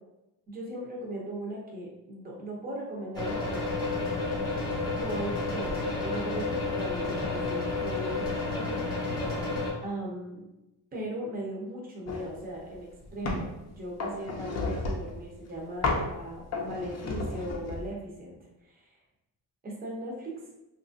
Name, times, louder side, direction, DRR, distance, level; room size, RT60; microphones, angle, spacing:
voice 1, 0.5-4.2 5.0-8.8 9.8-10.4 10.9-19.0 19.6-20.3, right 1 dB, 20° right, -3 dB, 0.6 m, -38 dB
sound 1, 3.1-9.7, left 3 dB, 10° left, 0.8 m, -31 dB
sound 2, 12.1-12.3 12.7-13.5 14.0-15.2 15.8-16.1 16.5-17.9, left 3 dB, 40° left, 0.5 m, -32 dB
2.8 x 2.5 x 2.5 m, 0.95 s
cardioid pair, 130°, 43 cm